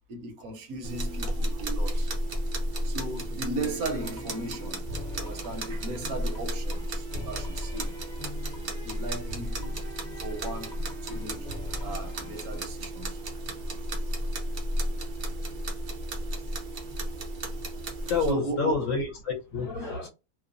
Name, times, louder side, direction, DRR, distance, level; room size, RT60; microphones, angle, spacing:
voice 1, 0.1-2.1 2.8-7.9 8.8-9.7 10.2-13.2 18.3-18.9, right 2 dB, 75° right, 1.1 m, -36 dB
sound 1, 0.8-18.3, right 1 dB, 55° right, 0.5 m, -33 dB
sound 2, 3.6-12.6, left 2 dB, 35° left, 1.0 m, -43 dB
voice 2, 18.0-20.1, left 4 dB, 65° left, 1.1 m, -29 dB
3.0 x 2.1 x 2.4 m
omnidirectional pair, 1.6 m